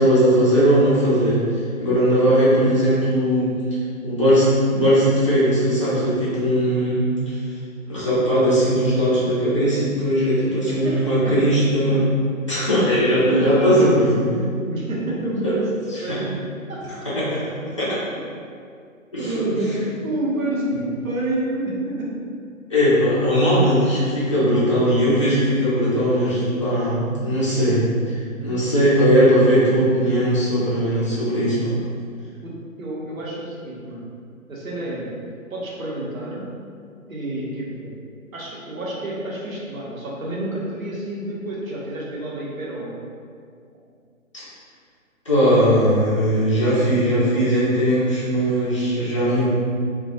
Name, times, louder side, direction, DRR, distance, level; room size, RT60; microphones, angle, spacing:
voice 1, 0.0-7.5 7.9-12.1 12.4-14.2 15.4-15.5 15.9-16.2 17.1-17.4 17.8-17.9 19.1-19.3 22.7-31.8 45.2-49.5, equal, 25° left, -11 dB, 0.5 m, -19 dB
voice 2, 10.6-11.4 11.9-12.0 13.2-13.8 14.3-15.7 16.0-16.9 19.2-22.1 32.4-34.0 34.5-35.1 35.5-36.5 37.1-37.9 38.3-43.0, right 1 dB, 75° right, -5 dB, 0.8 m, -28 dB
2.2 x 2.2 x 2.7 m, 2.2 s
figure-of-eight pair, 135°, 41 cm